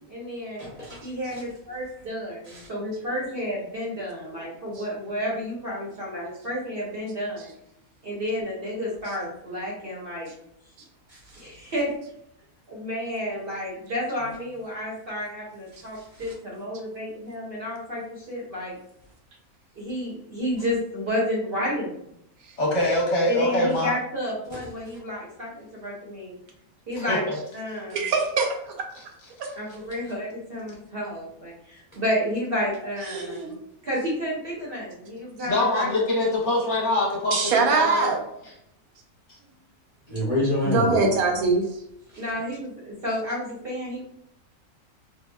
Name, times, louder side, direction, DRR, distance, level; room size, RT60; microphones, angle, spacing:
voice 1, 0.0-0.6 1.0-7.5 8.0-10.3 11.4-11.9 12.7-18.8 19.8-21.9 23.3-26.3 26.9-27.2 27.5-28.0 29.6-33.5 33.8-35.9 42.1-44.0, equal, 50° right, -4 dB, 0.8 m, -31 dB
voice 2, 0.6-1.4 2.5-2.7 11.1-11.4 15.7-16.2 24.5-24.6 40.1-41.1 42.1-42.2, left 1 dB, 45° left, -7 dB, 0.5 m, -29 dB
voice 3, 22.6-23.9 27.0-27.2 35.4-38.1, left 1 dB, 60° left, -3 dB, 0.9 m, -24 dB
voice 4, 27.9-28.5 33.1-33.5 37.3-38.2 40.7-41.6, right 4 dB, 75° right, 2 dB, 1.0 m, -22 dB
3.4 x 2.1 x 2.2 m, 0.74 s
omnidirectional pair, 1.6 m